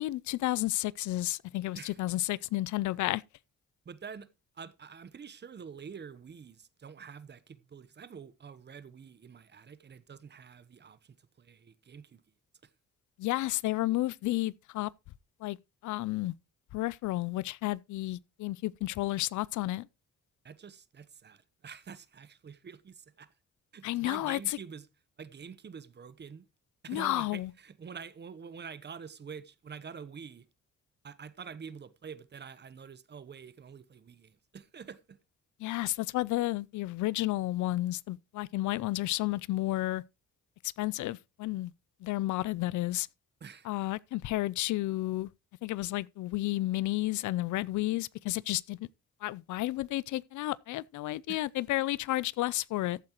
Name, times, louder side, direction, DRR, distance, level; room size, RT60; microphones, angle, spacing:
voice 1, 0.0-3.2 13.2-14.9 15.4-15.6 15.8-16.3 16.7-19.9 23.8-24.6 26.9-27.5 35.6-40.0 40.8-41.7 42.0-43.1 43.6-45.3 45.6-48.8 49.2-53.0, left 17 dB, 75° left, 0.5 m, -31 dB
voice 2, 3.8-4.3 4.5-12.2 12.6-12.7 20.4-23.3 23.7-24.9 25.2-26.5 26.8-30.5 31.0-35.2 43.4-43.7 51.3-51.4, right 6 dB, 35° right, 0.9 m, -47 dB
14.0 x 8.6 x 3.0 m
cardioid pair, 90°, 30 cm